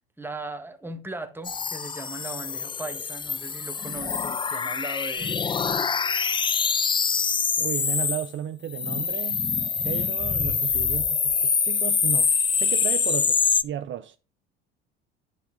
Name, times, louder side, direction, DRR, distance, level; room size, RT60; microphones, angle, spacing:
voice 1, 0.2-5.4, right 2 dB, 5° right, 1.4 m, -38 dB
sound 1, 1.4-8.3 8.7-13.6, left 6 dB, 15° left, 0.4 m, -25 dB
voice 2, 7.6-9.4 9.8-14.2, right 10 dB, 40° right, 0.6 m, -34 dB
10.0 x 6.0 x 3.8 m
hypercardioid pair, 65°, 31 cm